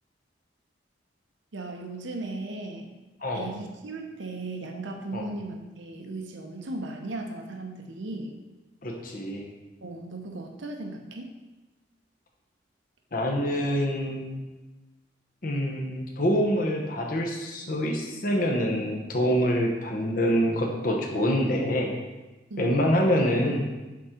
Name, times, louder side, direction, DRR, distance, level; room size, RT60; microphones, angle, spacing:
voice 1, 1.5-2.9 3.3-8.4 9.8-11.4 22.5-22.8, right 2 dB, 80° right, 3 dB, 0.9 m, -36 dB
voice 2, 8.8-9.5 13.1-14.4 15.4-22.0 22.6-23.7, equal, 50° left, 0 dB, 1.0 m, -26 dB
7.4 x 3.8 x 4.4 m, 1.1 s
head